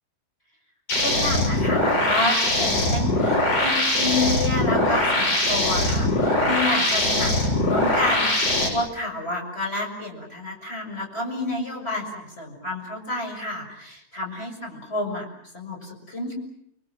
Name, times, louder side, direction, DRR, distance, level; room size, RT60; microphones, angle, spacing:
sound 1, 0.9-8.7, left 1 dB, 90° left, 8.7 m, -22 dB
voice 1, 1.0-15.3 15.5-16.3, left 2 dB, 20° left, 2 dB, 6.6 m, -30 dB
29.5 x 23.0 x 7.6 m, 0.70 s
omnidirectional pair, 3.6 m